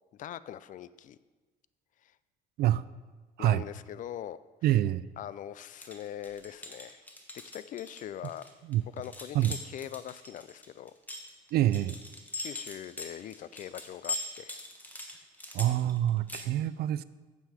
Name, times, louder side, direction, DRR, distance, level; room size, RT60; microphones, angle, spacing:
voice 1, 0.2-1.2 2.0-2.2 3.4-4.4 4.7-4.8 5.2-7.0 7.5-8.5 8.9-10.9 12.4-14.6, left 11 dB, 50° left, 16 dB, 0.4 m, -42 dB
voice 2, 4.6-5.1 8.7-8.8 9.3-9.5 11.5-12.0 15.5-17.0, right 13 dB, 70° right, 17 dB, 0.4 m, -26 dB
sound 1, 5.7-16.5, left 2 dB, 10° left, 1.3 m, -41 dB
9.2 x 7.7 x 4.9 m, 1.3 s
cardioid pair, 110°, 17 cm